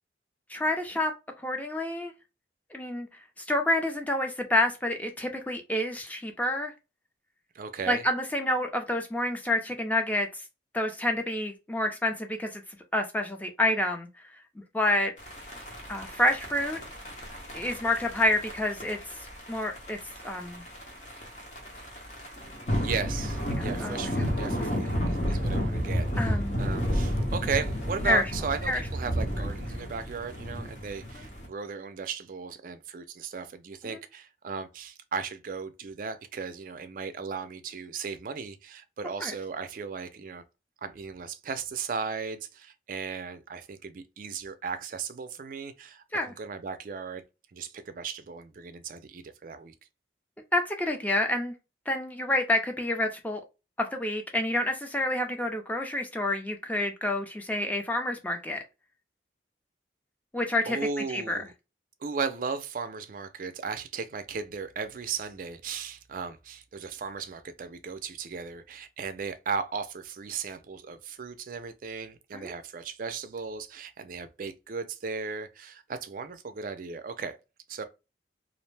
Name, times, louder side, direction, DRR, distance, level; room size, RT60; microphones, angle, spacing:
voice 1, 0.5-1.1 1.4-2.1 2.7-3.1 3.4-6.7 7.9-10.4 10.7-12.6 12.9-14.1 14.6-15.1 15.9-16.8 17.5-19.0 19.5-20.0 20.2-20.6 23.6-24.1 24.5-24.6 26.2-26.6 28.1-28.2 28.7-28.8 33.8-34.0 39.2-39.3 46.1-46.3 50.5-51.5 51.9-53.4 53.8-58.6 60.3-60.8 61.1-61.4 72.3-72.5, left 1 dB, 10° left, 0.5 m, -28 dB
voice 2, 7.5-8.0 22.8-40.4 40.8-47.2 47.5-49.7 60.7-61.5 62.0-77.4 77.7-77.8, right 5 dB, 50° right, 0.4 m, -36 dB
sound 1, 15.2-31.5, equal, 45° left, 0.9 m, -32 dB
2.4 x 2.0 x 3.2 m
head